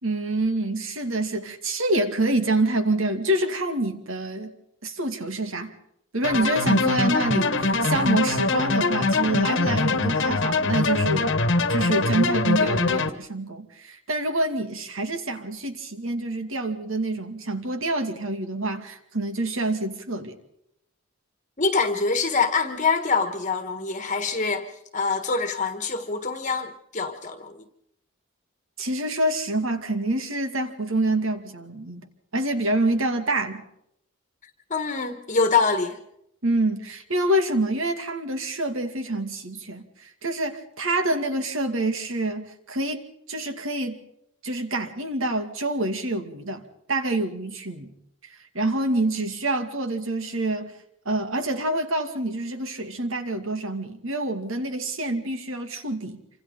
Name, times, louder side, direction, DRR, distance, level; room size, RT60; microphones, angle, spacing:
voice 1, 0.0-4.5 4.8-5.7 6.1-11.3 11.7-20.4 28.8-32.1 32.3-33.6 36.4-44.0 44.4-46.6 46.9-47.9 48.5-50.7 51.1-56.2, right 2 dB, 65° right, 2.5 m, -26 dB
sound 1, 6.2-13.1, left 3 dB, 55° left, 1.5 m, -23 dB
voice 2, 21.6-24.7 24.9-27.6 34.7-36.0, left 4 dB, 35° left, 1.5 m, -25 dB
27.5 x 25.5 x 3.9 m
head